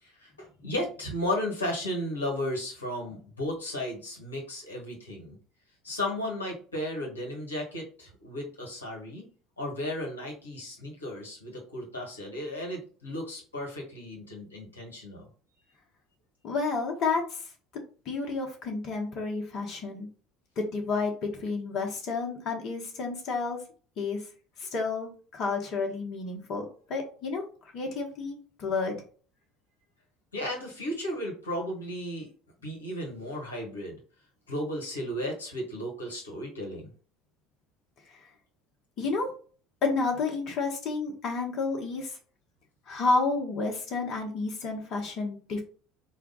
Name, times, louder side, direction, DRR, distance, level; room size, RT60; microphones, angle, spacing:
voice 1, 0.0-5.3 5.8-9.3 9.6-15.3 30.3-32.3 32.6-34.0 34.5-36.9, left 1 dB, 90° left, -1 dB, 1.2 m, -34 dB
voice 2, 16.4-20.1 20.6-23.6 24.0-24.2 24.6-27.4 27.7-29.0 38.1-38.2 39.0-39.3 39.8-42.2 42.9-45.6, left 4 dB, 50° left, 1 dB, 1.0 m, -31 dB
4.4 x 2.3 x 3.8 m, 0.41 s
hypercardioid pair, 65°, 0 cm